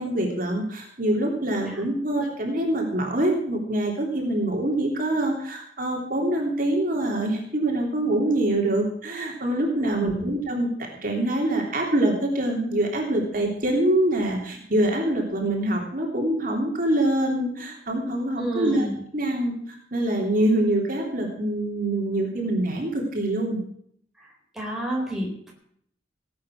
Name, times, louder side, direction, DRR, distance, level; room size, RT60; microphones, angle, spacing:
voice 1, 0.0-10.7 11.0-18.9 19.1-23.6, right 1 dB, 50° right, 1 dB, 3.1 m, -25 dB
voice 2, 9.8-10.3 18.4-19.0 24.2-24.3 24.5-25.5, right 1 dB, ahead, -2 dB, 4.1 m, -31 dB
18.0 x 8.6 x 6.3 m, 0.67 s
head